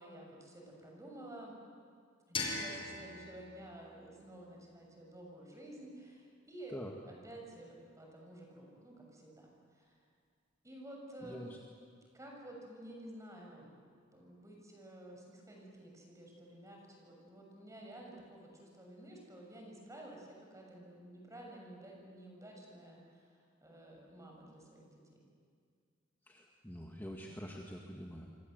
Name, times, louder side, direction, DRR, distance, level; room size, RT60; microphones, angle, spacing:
voice 1, 0.0-1.6 2.3-10.0 10.6-11.5 12.1-13.8 14.1-25.2, right 1 dB, 15° right, 0 dB, 6.8 m, -52 dB
sound 1, 2.3-5.2, left 3 dB, 25° left, 5.4 m, -42 dB
voice 2, 11.2-11.6 26.2-28.3, equal, 10° left, -1 dB, 1.8 m, -46 dB
28.5 x 25.0 x 8.0 m, 2.1 s
head